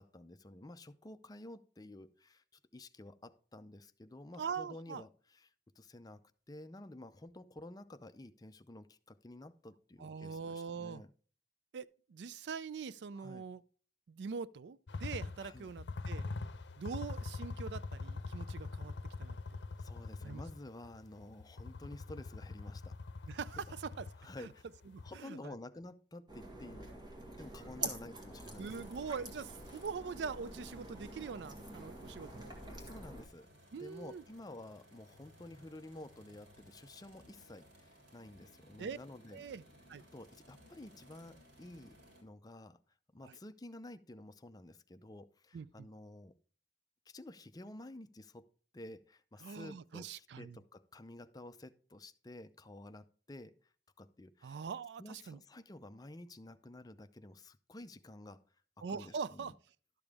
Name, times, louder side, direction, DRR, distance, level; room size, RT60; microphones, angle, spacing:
voice 1, 0.0-2.4 2.7-5.5 5.8-6.2 6.5-11.1 13.1-13.5 15.4-15.7 19.8-23.0 23.3-23.4 24.2-24.6 25.0-26.9 27.4-28.9 32.7-33.5 33.8-39.4 40.1-42.0 42.2-42.8 43.1-46.3 47.1-48.5 48.7-53.5 54.0-54.6 55.0-58.4 58.9-59.5, left 1 dB, 20° left, 0.5 m, -51 dB
voice 2, 4.4-5.0 10.0-11.0 11.7-13.6 14.1-16.3 16.8-18.9 19.2-19.4 20.2-20.4 23.3-24.1 24.4-24.5 24.9-25.5 27.8-27.9 28.6-32.5 33.7-34.2 38.8-39.0 39.3-39.6 39.9-40.0 43.2-43.4 45.5-45.9 49.4-50.6 54.4-55.4 58.8-59.6, right 5 dB, 70° right, 0.4 m, -43 dB
sound 1, 14.9-25.2, left 3 dB, 80° left, 0.6 m, -43 dB
sound 2, 26.3-33.2, right 1 dB, 25° right, 1.7 m, -46 dB
sound 3, 28.3-42.2, equal, 85° right, 3.3 m, -61 dB
12.0 x 7.0 x 3.5 m
head